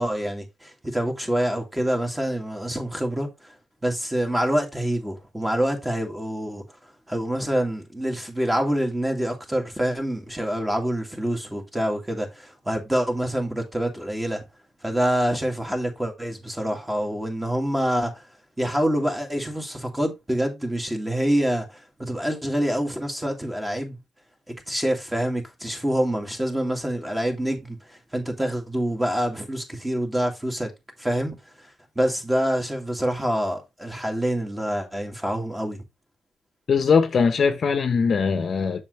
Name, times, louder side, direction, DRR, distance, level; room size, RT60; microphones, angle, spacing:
voice 1, 0.0-3.5 3.8-6.6 7.1-14.4 14.8-18.2 18.6-24.0 24.5-30.7 31.0-31.4 32.0-35.8, equal, 10° right, 2.4 m, -26 dB
voice 2, 36.7-38.8, left 5 dB, 50° left, 1.1 m, -21 dB
7.0 x 6.5 x 3.3 m
cardioid pair, 90°, 0 cm